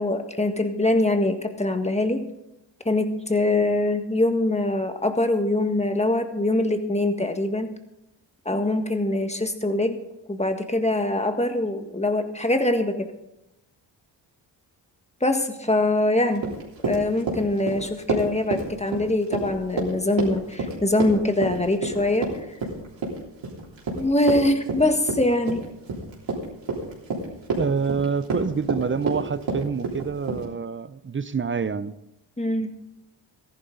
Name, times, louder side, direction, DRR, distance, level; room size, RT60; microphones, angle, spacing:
voice 1, 0.0-2.2 2.8-7.7 8.4-10.0 10.3-13.1 15.2-16.4 16.8-22.3 24.0-25.7 32.4-32.7, left 2 dB, 15° left, 6 dB, 1.7 m, -23 dB
Run, 16.3-30.4, right 3 dB, 70° right, 3.6 m, -29 dB
voice 2, 27.6-32.0, right 5 dB, 25° right, 16 dB, 0.6 m, -27 dB
14.5 x 11.0 x 3.9 m, 0.88 s
supercardioid pair, 50°, 46 cm